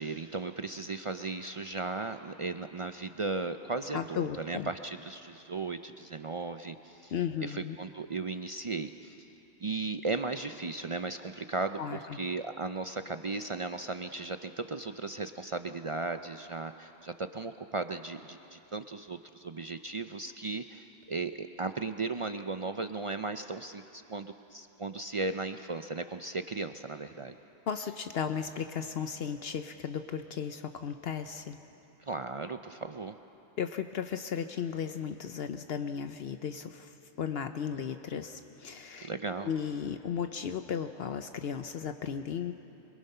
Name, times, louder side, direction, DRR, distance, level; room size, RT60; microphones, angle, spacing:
voice 1, 0.0-7.1 7.4-9.2 9.6-27.4 32.0-33.1 39.0-39.5, right 3 dB, 45° right, 8 dB, 0.4 m, -36 dB
voice 2, 3.9-4.7 7.1-7.8 11.8-12.2 27.7-31.6 33.6-39.1 39.4-42.5, left 7 dB, 65° left, 8 dB, 0.9 m, -35 dB
25.5 x 23.0 x 5.6 m, 3.0 s
omnidirectional pair, 1.1 m